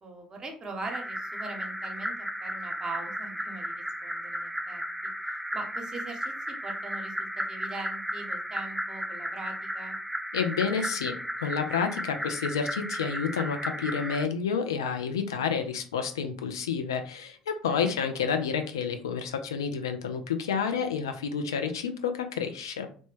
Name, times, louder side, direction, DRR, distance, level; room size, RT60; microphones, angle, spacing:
voice 1, 0.0-5.1 5.5-10.0 17.7-17.9, right 3 dB, 30° right, 3 dB, 0.8 m, -41 dB
sound 1, 0.8-14.2, equal, ahead, 0.3 m, -35 dB
voice 2, 10.3-22.9, left 6 dB, 75° left, 7 dB, 0.3 m, -30 dB
3.1 x 2.1 x 3.0 m, 0.42 s
figure-of-eight pair, 60°, 2 cm